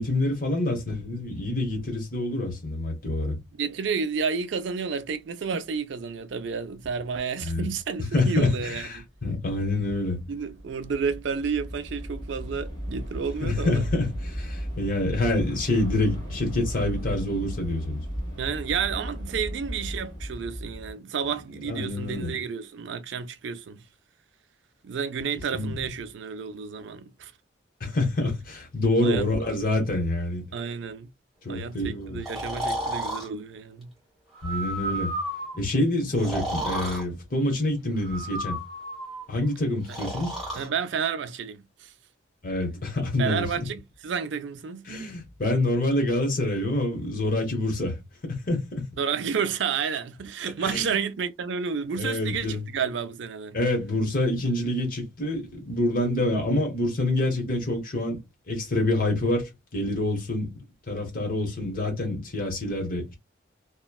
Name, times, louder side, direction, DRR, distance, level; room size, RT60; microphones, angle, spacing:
voice 1, 0.0-3.4 7.4-7.7 8.1-10.2 13.4-18.0 21.7-22.3 25.5-25.8 27.8-30.5 31.4-32.2 34.4-35.1 35.5-38.6 39.3-40.4 42.4-43.6 44.9-48.0 48.2-48.9 50.6-50.9 52.0-52.6 53.5-58.2 58.5-60.5 60.9-63.1, left 1 dB, 45° left, 1.1 m, -27 dB
voice 2, 3.5-9.1 10.3-13.9 18.4-23.8 24.8-27.3 29.0-29.3 30.5-31.1 31.5-33.9 39.9-40.0 40.5-41.9 43.2-44.9 49.0-53.6, right 6 dB, 70° right, 0.4 m, -31 dB
Train / Subway metro underground, 7.8-8.1 8.3-20.9, equal, 25° left, 1.4 m, -36 dB
Breathing, 32.2-33.3 34.3-35.6 36.1-37.0 38.0-39.2 39.9-40.7, right 1 dB, ahead, 1.6 m, -32 dB
3.0 x 2.1 x 2.2 m
head